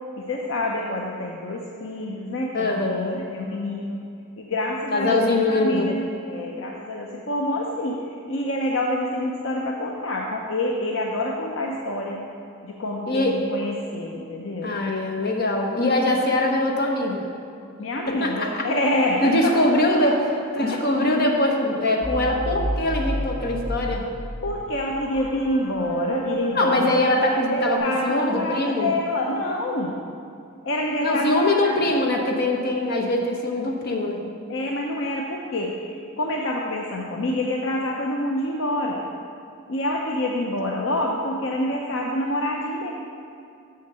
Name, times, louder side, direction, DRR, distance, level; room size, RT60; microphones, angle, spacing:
voice 1, 0.1-4.0 4.4-8.0 8.3-12.2 12.6-14.8 17.8-19.6 20.6-20.8 24.4-30.0 30.6-31.8 34.5-39.1 39.7-42.9, left 1 dB, 60° left, -1 dB, 0.7 m, -27 dB
voice 2, 2.5-3.2 4.9-5.9 13.1-13.4 14.6-17.2 18.1-18.7 19.2-20.2 20.5-24.1 26.5-28.9 31.0-34.2, left 1 dB, 45° left, 1 dB, 1.1 m, -22 dB
sound 1, 22.0-27.8, right 2 dB, 80° left, 2.5 m, -30 dB
7.2 x 6.5 x 6.8 m, 2.6 s
head